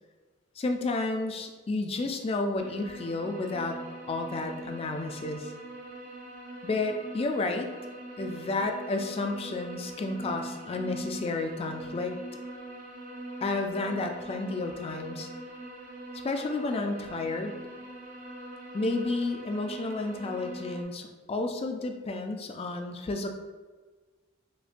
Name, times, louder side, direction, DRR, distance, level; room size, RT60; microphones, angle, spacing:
voice 1, 0.6-3.8 4.1-5.5 6.6-7.7 8.2-12.1 13.4-15.3 16.2-17.6 18.7-23.3, left 2 dB, 30° left, 5 dB, 0.3 m, -31 dB
sound 1, 2.6-20.8, right 1 dB, 45° right, 0.5 m, -42 dB
5.1 x 2.1 x 2.5 m, 1.3 s
head